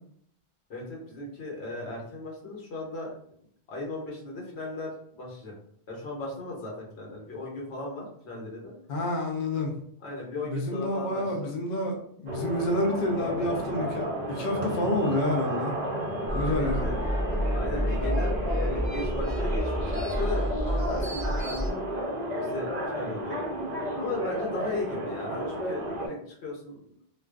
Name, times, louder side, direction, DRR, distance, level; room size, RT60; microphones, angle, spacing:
voice 1, 0.7-3.1 3.7-5.5 5.9-8.7 10.0-11.5 16.0-17.0 17.5-21.8 22.4-23.5 24.0-27.0, left 2 dB, 80° left, -3 dB, 1.1 m, -37 dB
voice 2, 8.9-9.7 10.5-15.7 16.3-16.9, left 1 dB, 60° left, 1 dB, 0.6 m, -28 dB
sound 1, 12.3-26.1, equal, 55° right, 0.5 m, -32 dB
sound 2, 16.3-21.7, equal, 25° left, 0.6 m, -29 dB
2.3 x 2.3 x 2.3 m, 0.66 s
omnidirectional pair, 1.1 m